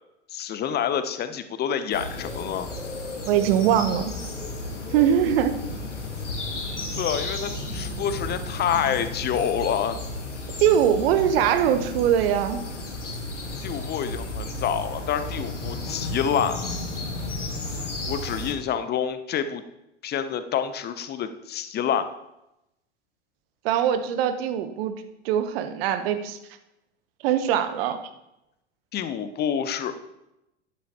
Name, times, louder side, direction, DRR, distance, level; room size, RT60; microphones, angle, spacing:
voice 1, 0.3-2.7 7.0-10.0 13.6-16.6 18.1-19.6 20.0-22.0 28.9-30.0, left 8 dB, 30° left, 11 dB, 0.9 m, -27 dB
sound 1, 1.9-18.5, left 2 dB, 85° left, 1.8 m, -33 dB
voice 2, 3.3-4.1 4.9-5.5 10.6-12.6 23.6-26.4 27.2-28.0, right 9 dB, 55° right, 9 dB, 1.1 m, -22 dB
12.0 x 10.5 x 3.0 m, 0.89 s
figure-of-eight pair, 85°, 35 cm